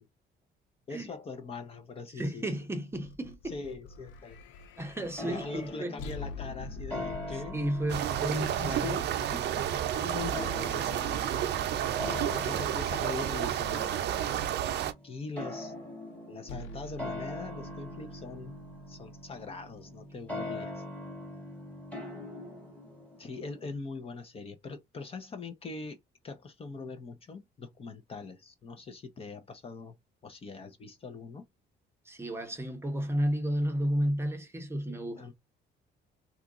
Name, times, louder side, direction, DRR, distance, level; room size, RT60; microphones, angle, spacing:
voice 1, 0.9-2.4 3.5-4.4 5.2-7.6 8.3-11.2 12.3-14.6 15.0-15.7 16.3-18.5 18.9-20.8 23.2-29.9 30.2-31.5 34.9-35.3, left 4 dB, 30° left, 0.6 m, -42 dB
voice 2, 2.2-3.6 4.8-6.0 7.5-9.0 9.3-9.8 32.1-35.3, right 1 dB, 15° right, 0.7 m, -32 dB
sound 1, 2.9-10.2 16.5-20.6, left 2 dB, 85° left, 0.5 m, -46 dB
sound 2, 5.2-23.6, left 2 dB, 5° left, 1.1 m, -43 dB
sound 3, 7.9-14.9, right 10 dB, 65° right, 0.5 m, -31 dB
2.9 x 2.4 x 3.5 m
cardioid pair, 165°, 19 cm